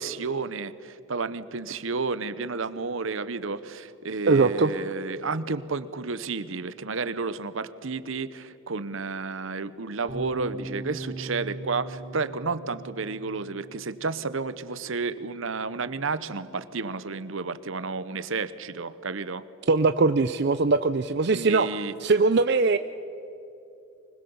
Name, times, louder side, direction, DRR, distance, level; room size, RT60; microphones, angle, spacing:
voice 1, 0.0-19.4 21.3-21.9, right 4 dB, 70° right, 14 dB, 0.9 m, -31 dB
voice 2, 4.2-4.7 19.7-21.7 22.0-22.8, right 3 dB, 50° right, 10 dB, 0.5 m, -21 dB
sound 1, 10.1-16.3, right 2 dB, 10° right, 5.6 m, -41 dB
24.5 x 20.5 x 7.1 m, 2.9 s
head